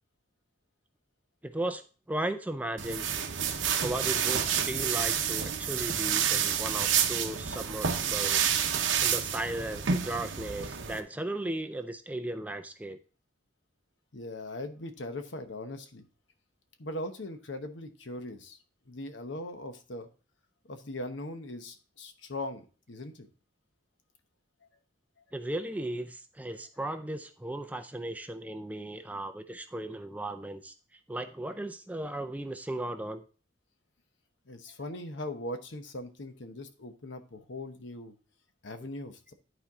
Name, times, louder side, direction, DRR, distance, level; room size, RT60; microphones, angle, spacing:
voice 1, 1.4-3.1 3.8-13.0 25.3-33.2, right 1 dB, 10° right, 9 dB, 0.4 m, -36 dB
sound 1, 2.8-11.0, right 8 dB, 75° right, 0.8 m, -29 dB
voice 2, 14.1-16.0 16.8-18.6 18.9-20.1 20.7-23.3 34.5-38.1 38.6-39.3, left 1 dB, 65° left, 7 dB, 1.0 m, -40 dB
11.0 x 4.5 x 3.5 m, 0.36 s
head